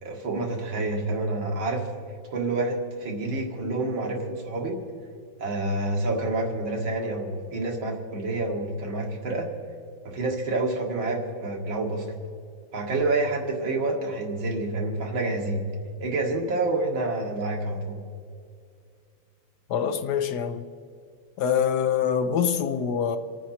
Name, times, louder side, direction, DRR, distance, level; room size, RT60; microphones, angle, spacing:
voice 1, 0.0-1.9 2.3-4.8 5.4-9.5 10.0-12.1 12.7-15.6 16.0-18.0, right 2 dB, 90° right, 2.7 m, -28 dB
voice 2, 19.7-20.6 21.4-23.2, left 8 dB, 65° left, 1.2 m, -25 dB
27.5 x 9.2 x 4.3 m
omnidirectional pair, 2.1 m